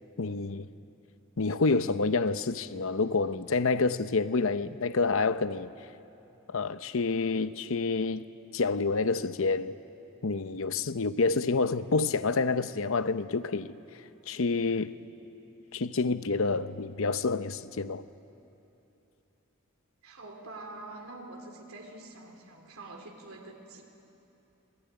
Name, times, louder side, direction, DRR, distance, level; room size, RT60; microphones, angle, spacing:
voice 1, 0.2-0.7 1.4-5.7 6.5-8.2 8.5-9.8 10.2-13.8 14.3-14.9 15.7-18.0, left 4 dB, 70° left, 0.8 m, -28 dB
voice 2, 20.0-23.8, right 2 dB, 85° right, 3.3 m, -45 dB
26.0 x 19.5 x 9.6 m
head